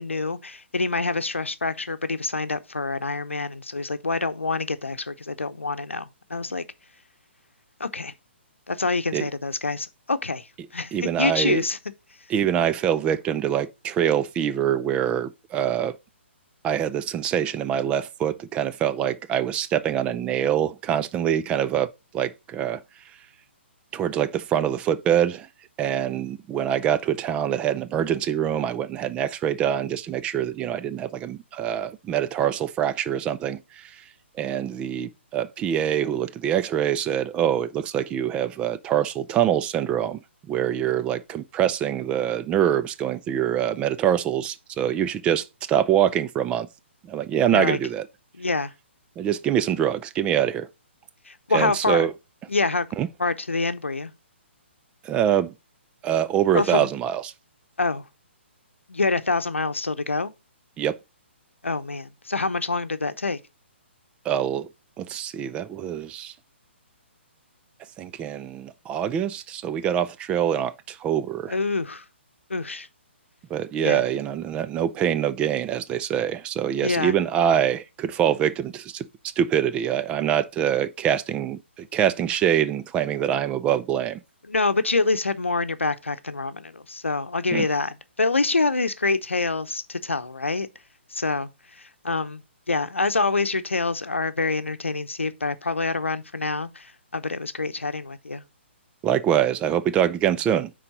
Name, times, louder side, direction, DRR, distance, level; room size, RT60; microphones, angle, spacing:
voice 1, 0.0-6.6 7.8-8.1 8.7-10.5 10.7-11.8 47.5-47.8 48.4-48.7 51.3-52.1 52.5-52.9 53.2-54.1 56.5-56.9 57.8-58.0 58.9-60.3 61.6-63.4 71.5-72.0 72.5-72.9 73.8-74.0 76.8-77.2 84.5-90.7 91.1-92.4 92.7-98.4, left 3 dB, 85° left, 0.7 m, -26 dB
voice 2, 10.9-11.6 12.3-16.0 16.6-22.8 23.9-25.5 25.8-33.9 34.4-40.2 40.5-46.7 47.1-48.1 49.2-50.7 51.5-52.1 53.0-53.1 55.0-55.5 56.0-57.3 60.8-61.0 64.3-64.7 65.0-66.3 68.0-71.5 73.5-79.1 79.4-84.2 87.5-87.7 99.0-100.7, right 10 dB, 15° right, 0.4 m, -24 dB
9.7 x 3.8 x 3.9 m
figure-of-eight pair, 130°, 7 cm